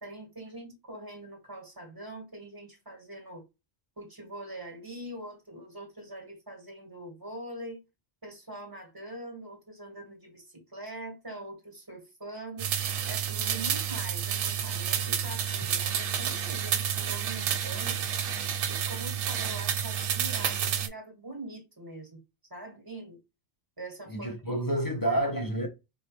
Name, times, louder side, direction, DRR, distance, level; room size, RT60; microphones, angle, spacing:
voice 1, 0.0-3.5 4.0-7.8 8.2-12.7 13.1-18.0 18.7-22.2 22.5-23.2 23.8-24.4 25.0-25.2, right 1 dB, 20° right, 1.6 m, -43 dB
sound 1, 12.6-20.9, right 9 dB, 80° right, 0.9 m, -30 dB
voice 2, 24.1-25.7, right 1 dB, 20° left, 0.9 m, -29 dB
4.9 x 2.3 x 3.1 m
omnidirectional pair, 1.2 m